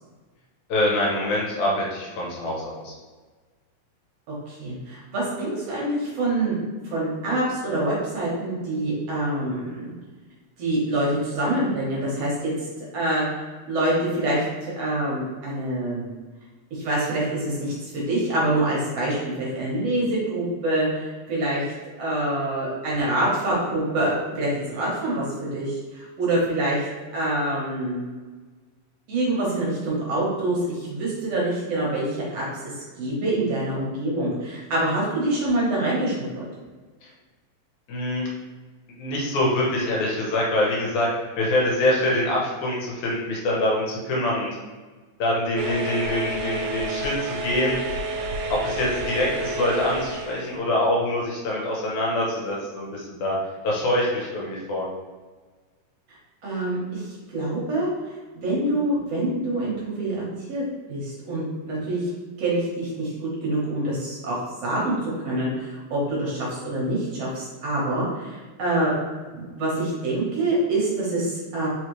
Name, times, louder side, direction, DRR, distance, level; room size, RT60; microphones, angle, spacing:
voice 1, 0.7-2.9 37.9-38.3 39.0-41.1 41.4-44.6 45.2-47.8 48.5-53.3 53.6-54.9, left 1 dB, 75° left, -3 dB, 2.5 m, -24 dB
voice 2, 4.3-6.6 6.8-9.9 10.6-12.5 12.9-16.1 16.7-21.6 22.0-26.9 27.1-28.1 29.1-36.4 56.1-57.9 58.4-60.2 60.5-60.6 60.9-62.1 62.4-64.9 65.2-69.0 69.3-71.7, right 1 dB, 60° right, -6 dB, 2.2 m, -26 dB
sound 1, 45.6-50.6, right 2 dB, 90° right, 2.0 m, -30 dB
5.2 x 3.3 x 3.1 m, 1.4 s
omnidirectional pair, 3.4 m